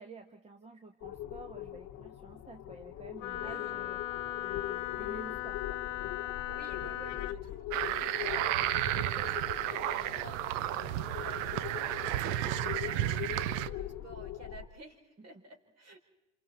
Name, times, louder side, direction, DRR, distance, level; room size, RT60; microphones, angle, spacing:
voice 1, 0.0-4.0 4.3-5.8 15.2-15.4, right 2 dB, 15° right, 5 dB, 1.3 m, -50 dB
sound 1, 1.0-14.7, left 13 dB, 45° left, 1.2 m, -42 dB
Wind instrument woodwind instrument, 3.2-7.4, left 16 dB, 80° left, 0.9 m, -38 dB
voice 2, 3.3-3.8 6.5-16.0, right 3 dB, 40° right, 4 dB, 4.4 m, -52 dB
sound 2, 7.7-13.7, right 14 dB, 70° right, 0.8 m, -32 dB
27.5 x 27.5 x 4.3 m, 0.94 s
hypercardioid pair, 100°, 38 cm